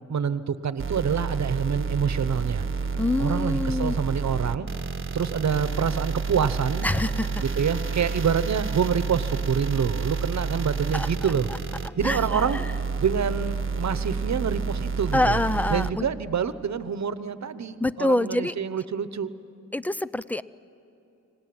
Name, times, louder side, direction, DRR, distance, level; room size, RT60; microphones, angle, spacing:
voice 1, 0.0-2.7 3.2-4.7 5.1-6.9 7.4-11.5 12.0-12.6 13.0-15.4 15.7-19.3, right 7 dB, 70° right, 13 dB, 1.0 m, -27 dB
sound 1, 0.8-15.9, right 4 dB, 45° right, 1.2 m, -29 dB
voice 2, 3.0-4.0 6.8-7.4 10.9-11.1 12.0-12.5 15.1-16.1 17.8-18.5 19.7-20.4, left 1 dB, 5° left, 16 dB, 0.5 m, -25 dB
24.5 x 19.0 x 9.5 m, 2.9 s
wide cardioid pair, 85°, 29 cm